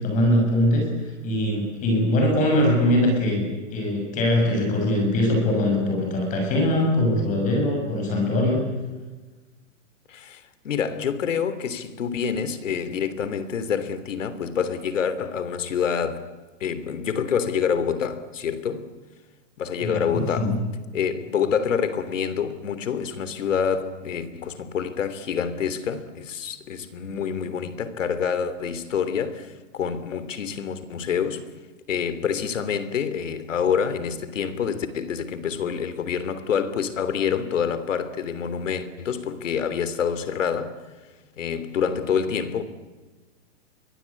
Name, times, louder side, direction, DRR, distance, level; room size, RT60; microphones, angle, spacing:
voice 1, 0.0-3.4 3.7-8.6 19.8-20.6, left 1 dB, 20° left, 6.6 m, -22 dB
voice 2, 10.1-16.3 16.6-18.9 19.6-20.6 20.9-31.5 31.9-40.7 41.4-42.6, left 7 dB, 85° left, 3.3 m, -27 dB
30.0 x 23.0 x 8.5 m
hypercardioid pair, 165°, 37 cm